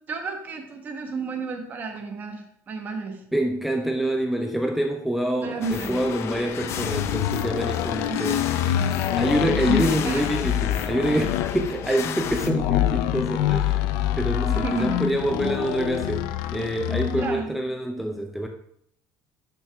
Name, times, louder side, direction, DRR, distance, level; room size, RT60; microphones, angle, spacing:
voice 1, 0.1-3.2 5.4-6.0 8.1-9.2 10.0-10.2 14.5-15.1 17.2-17.7, right 4 dB, 30° right, 4 dB, 1.3 m, -33 dB
voice 2, 3.3-8.5 9.1-13.8 14.2-18.5, right 1 dB, ahead, 3 dB, 0.5 m, -26 dB
sound 1, 5.6-12.5, left 9 dB, 45° left, 0.6 m, -33 dB
sound 2, 6.6-17.4, left 12 dB, 90° left, 0.5 m, -26 dB
12.0 x 6.0 x 3.5 m, 0.68 s
cardioid pair, 170°, 7 cm